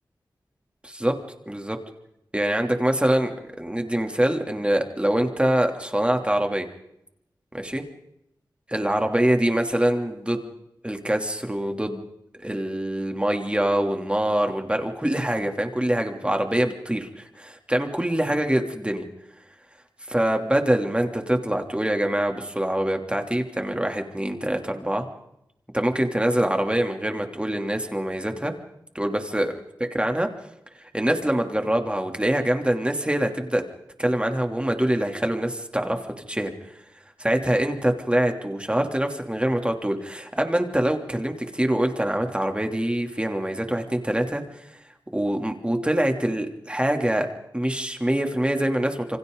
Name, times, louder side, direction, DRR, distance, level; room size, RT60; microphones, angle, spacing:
voice 1, 0.8-1.2 1.5-1.8 2.3-6.7 7.5-7.8 8.7-10.5 10.8-12.0 12.4-19.0 20.1-25.0 25.7-28.5 28.9-29.5 29.9-30.3 30.7-33.6 34.0-36.8 37.2-44.7 45.1-47.3 47.5-49.2, right 1 dB, 15° right, 4 dB, 3.2 m, -24 dB
28.0 x 25.0 x 4.0 m, 0.80 s
cardioid pair, 55°, 8 cm